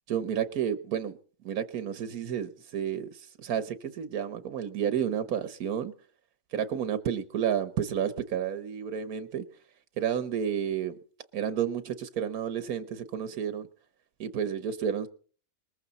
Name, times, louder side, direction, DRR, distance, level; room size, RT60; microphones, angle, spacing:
voice 1, 0.1-1.2 1.4-3.1 3.4-5.9 6.5-9.4 10.0-10.9 11.3-13.7 14.2-15.1, right 8 dB, 85° right, 1.5 m, -31 dB
20.5 x 14.5 x 4.1 m
omnidirectional pair, 1.5 m